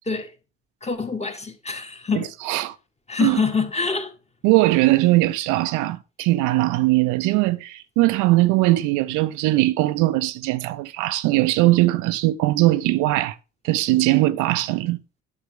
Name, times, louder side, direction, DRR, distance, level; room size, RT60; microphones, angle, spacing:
voice 1, 0.8-2.3 3.1-4.1, left 5 dB, 20° left, 1.9 m, -25 dB
voice 2, 2.1-2.7 3.2-3.4 4.4-13.4 13.6-15.0, right 18 dB, 60° right, 0.7 m, -20 dB
12.0 x 6.3 x 3.7 m
figure-of-eight pair, 50°, 34 cm